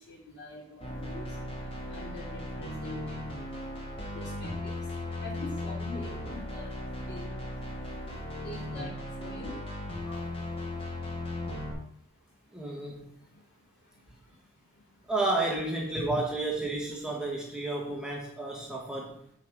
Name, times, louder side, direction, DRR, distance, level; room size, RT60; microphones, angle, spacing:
voice 1, 0.1-1.2 1.9-3.2 4.1-4.8 5.2-6.7 7.0-7.3 8.3-8.9 9.2-9.5 15.9-16.2, equal, 55° left, -3 dB, 3.4 m, -43 dB
sound 1, 0.8-11.7, left 1 dB, 25° left, 2.0 m, -37 dB
voice 2, 12.5-13.1 15.1-19.2, right 2 dB, 5° right, -2 dB, 1.1 m, -31 dB
8.4 x 4.5 x 6.0 m, 0.67 s
head